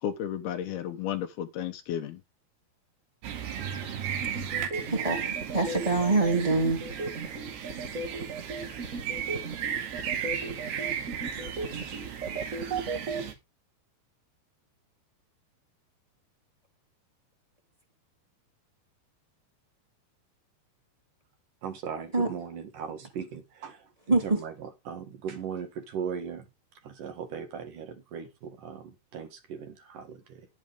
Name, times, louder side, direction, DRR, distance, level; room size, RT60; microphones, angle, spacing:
voice 1, 0.0-2.2, left 10 dB, 80° left, 2.9 m, -33 dB
sound 1, 3.2-13.3, right 8 dB, 90° right, 4.3 m, -35 dB
sound 2, 4.2-13.2, right 3 dB, 40° right, 1.1 m, -35 dB
voice 2, 4.9-6.8 22.1-22.3 24.1-24.2, right 3 dB, 10° right, 2.2 m, -25 dB
voice 3, 21.6-23.9 24.2-26.5 26.8-30.5, right 7 dB, 60° right, 3.3 m, -38 dB
11.5 x 10.5 x 3.6 m
omnidirectional pair, 4.5 m